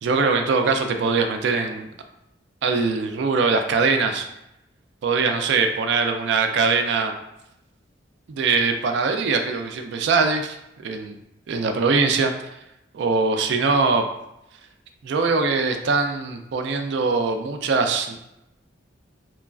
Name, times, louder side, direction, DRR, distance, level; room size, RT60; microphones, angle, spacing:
voice 1, 0.0-1.9 2.6-4.3 5.0-7.1 8.3-11.2 11.5-12.3 12.9-14.0 15.0-18.2, right 4 dB, 65° right, 6 dB, 0.3 m, -22 dB
3.0 x 2.3 x 2.3 m, 0.84 s
head